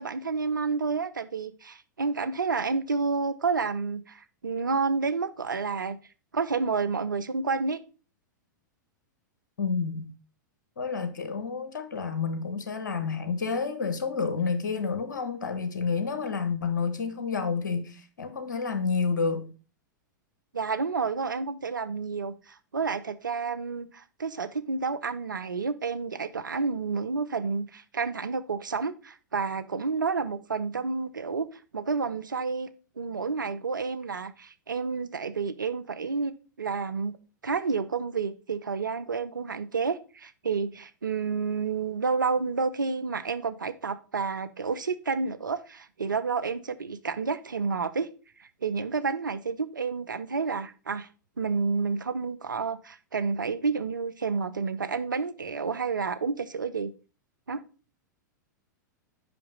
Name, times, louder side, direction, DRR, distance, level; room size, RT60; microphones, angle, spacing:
voice 1, 0.0-6.0 6.3-7.8 20.5-31.5 31.7-32.7 33.0-36.3 36.6-37.2 37.4-48.1 48.4-51.1 51.4-56.9 57.5-57.6, right 4 dB, 90° right, 0.5 m, -30 dB
voice 2, 9.6-10.1 10.8-19.5, left 5 dB, 75° left, 1.2 m, -29 dB
5.7 x 5.2 x 5.2 m
hypercardioid pair, 100°, 10 cm